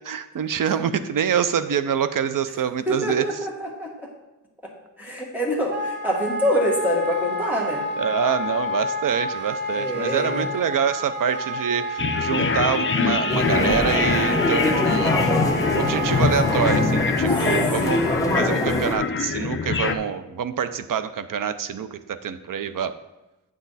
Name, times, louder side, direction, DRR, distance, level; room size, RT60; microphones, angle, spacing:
voice 1, 0.0-3.2 8.0-15.2 15.8-18.0 18.4-22.9, right 8 dB, 70° right, 12 dB, 0.5 m, -26 dB
voice 2, 2.9-3.9 5.0-7.9 9.7-10.5 17.8-18.4, equal, 5° right, -3 dB, 1.7 m, -26 dB
Wind instrument woodwind instrument, 5.7-17.0, left 2 dB, 35° right, 1.1 m, -29 dB
sound 1, 12.0-20.0, left 5 dB, 40° left, 0.4 m, -24 dB
sound 2, 13.3-18.9, left 1 dB, 10° left, 0.9 m, -24 dB
8.7 x 6.2 x 4.1 m, 1.0 s
wide cardioid pair, 150°, 33 cm